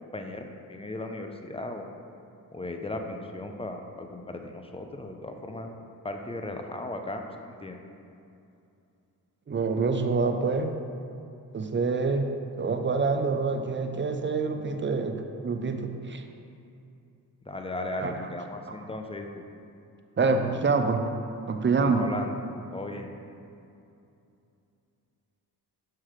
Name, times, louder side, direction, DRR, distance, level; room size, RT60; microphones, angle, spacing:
voice 1, 0.1-1.9 2.5-5.7 6.0-7.8 17.5-19.3 21.8-22.3 22.7-23.1, left 2 dB, 15° left, 4 dB, 0.6 m, -36 dB
voice 2, 9.5-10.7 11.5-12.3 12.6-16.2 18.0-18.3 18.7-18.8 20.2-21.0 21.5-22.0, right 4 dB, 30° right, 6 dB, 0.6 m, -26 dB
6.3 x 5.8 x 3.2 m, 2.6 s
supercardioid pair, 50°, 40 cm